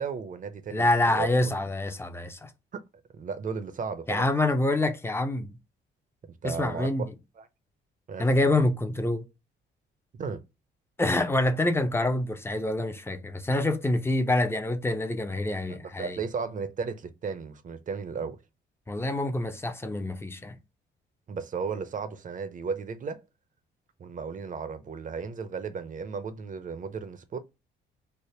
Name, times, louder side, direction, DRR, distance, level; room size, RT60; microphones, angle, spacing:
voice 1, 0.0-1.6 2.7-2.8 3.1-4.3 6.2-6.9 7.4-7.5 8.1-8.3 10.1-10.4 15.7-18.4 21.3-23.2 24.0-27.4, right 5 dB, 40° right, 0.6 m, -35 dB
voice 2, 0.7-2.5 4.1-5.5 6.4-7.1 8.2-9.2 11.0-16.2 18.9-20.6, left 2 dB, 10° left, 0.5 m, -26 dB
3.4 x 2.1 x 4.2 m
cardioid pair, 90°, 20 cm